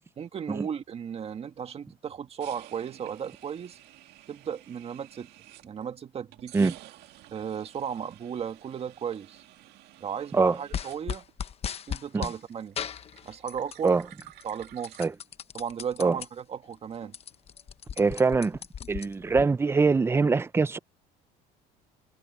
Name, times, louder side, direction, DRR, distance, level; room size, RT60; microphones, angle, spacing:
voice 1, 0.2-3.8 4.3-5.3 5.6-6.8 7.3-9.4 10.0-11.2 11.9-12.8 13.2-14.0 14.4-15.0 15.5-17.1, right 8 dB, 35° right, 1.8 m, -35 dB
sound 1, 2.4-5.9 6.3-11.9 12.1-15.1, right 15 dB, 70° right, 2.0 m, -52 dB
sound 2, 10.7-12.4 12.8-13.9 14.2-16.3 16.7-16.8 17.0-19.4, left 8 dB, 35° left, 1.1 m, -36 dB
voice 2, 18.0-18.6 18.9-20.8, right 4 dB, 15° right, 0.6 m, -23 dB
cardioid pair, 125°, 18 cm